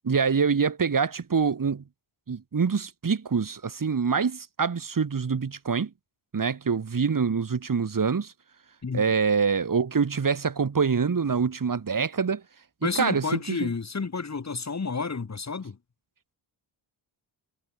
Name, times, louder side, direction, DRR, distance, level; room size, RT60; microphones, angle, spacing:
voice 1, 0.0-1.8 2.3-5.9 6.3-8.3 8.9-12.4 13.0-13.7, right 5 dB, 40° right, 5.2 m, -25 dB
voice 2, 12.8-15.8, left 4 dB, 35° left, 5.0 m, -30 dB
wide cardioid pair, 125°, 49 cm